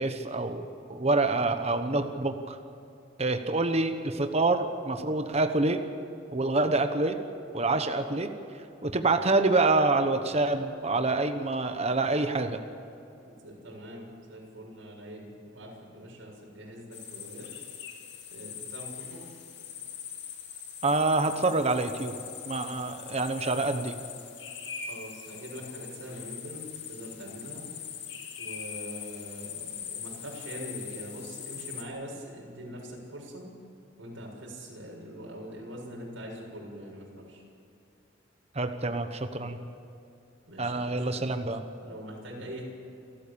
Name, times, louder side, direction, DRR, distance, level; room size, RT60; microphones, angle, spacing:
voice 1, 0.0-2.6 3.2-5.8 6.3-7.2 7.5-8.3 8.8-12.6 20.8-22.1 22.5-24.0 38.5-39.6 40.6-41.6, right 2 dB, 35° right, 7 dB, 1.1 m, -26 dB
voice 2, 13.3-17.5 18.3-19.2 24.9-27.6 28.4-33.5 34.0-37.4 40.5-41.3 41.8-42.6, equal, 80° right, -2 dB, 7.0 m, -43 dB
sound 1, 16.9-31.8, left 8 dB, 60° left, 2.4 m, -42 dB
29.0 x 13.5 x 7.0 m, 2.8 s
head